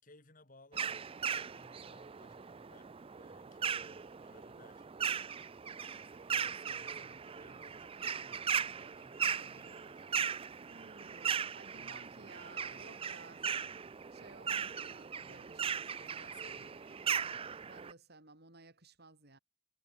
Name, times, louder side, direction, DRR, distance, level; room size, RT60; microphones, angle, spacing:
voice 1, 0.0-4.9 5.8-10.0 11.7-13.6 14.5-17.2, left 2 dB, 40° left, 4.5 m, -63 dB
sound 1, 0.7-17.9, right 7 dB, 30° right, 0.4 m, -38 dB
voice 2, 10.7-13.4 14.1-15.8 17.6-19.4, right 3 dB, 55° right, 5.6 m, -56 dB
head